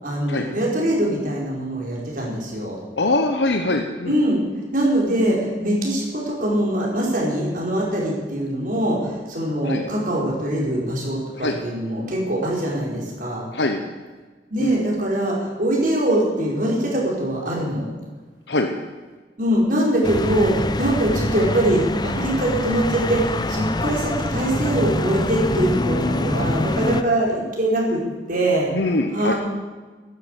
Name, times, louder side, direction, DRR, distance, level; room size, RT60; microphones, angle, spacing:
voice 1, 0.0-2.8 4.0-4.4 4.7-13.4 14.5-17.9 19.4-28.0 28.3-28.7 29.1-29.4, right 1 dB, 50° right, -3 dB, 5.2 m, -22 dB
voice 2, 3.0-4.2 9.6-9.8 11.3-11.6 13.5-13.8 14.6-14.8 18.5-18.7 28.7-29.3, left 2 dB, 75° left, 4 dB, 1.2 m, -23 dB
sound 1, 20.0-27.0, left 2 dB, 25° left, 0.8 m, -25 dB
13.5 x 12.5 x 8.4 m, 1.3 s
head